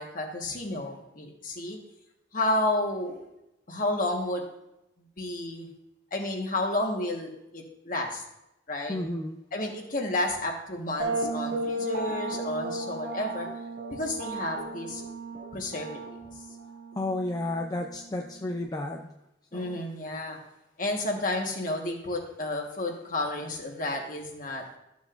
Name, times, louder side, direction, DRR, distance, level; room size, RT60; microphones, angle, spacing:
voice 1, 0.0-1.8 2.3-3.2 3.7-4.4 5.2-5.7 6.1-8.2 8.7-9.0 9.5-13.5 13.9-15.0 15.5-16.2 19.5-20.4 20.8-24.6, left 1 dB, 45° left, 1 dB, 1.4 m, -31 dB
voice 2, 8.9-9.4 17.0-19.1 19.5-19.8, left 1 dB, 20° left, 2 dB, 0.5 m, -32 dB
sound 1, 11.0-18.6, right 2 dB, 80° right, 2.0 m, -35 dB
13.5 x 7.3 x 2.6 m, 0.86 s
head